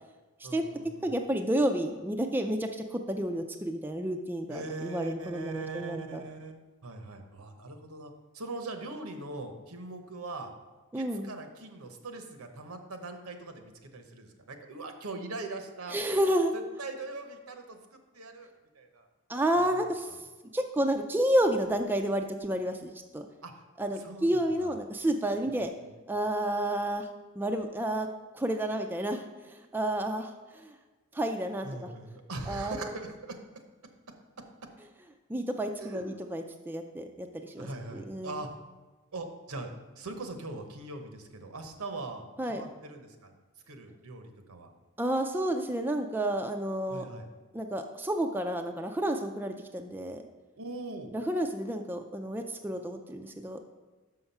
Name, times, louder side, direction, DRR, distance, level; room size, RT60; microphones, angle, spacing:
voice 1, 0.4-1.1 4.5-10.5 10.9-16.0 16.2-16.3 16.8-19.1 19.8-20.2 23.4-23.6 24.0-24.7 25.5-25.6 25.8-25.9 31.6-33.4 35.8-36.2 37.4-38.5 39.1-43.3 43.7-44.7 46.9-47.3 50.6-51.1, right 3 dB, 80° right, 6 dB, 0.9 m, -41 dB
voice 2, 1.0-6.2 10.9-11.3 15.9-16.5 19.3-20.2 20.5-23.3 23.8-25.7 26.1-27.1 27.4-28.1 28.3-30.7 31.1-31.9 32.5-32.9 35.3-38.4 42.4-42.6 45.0-47.1 47.5-50.2 51.1-53.7, right 1 dB, 10° right, 4 dB, 0.3 m, -30 dB
6.3 x 5.8 x 5.5 m, 1.2 s
head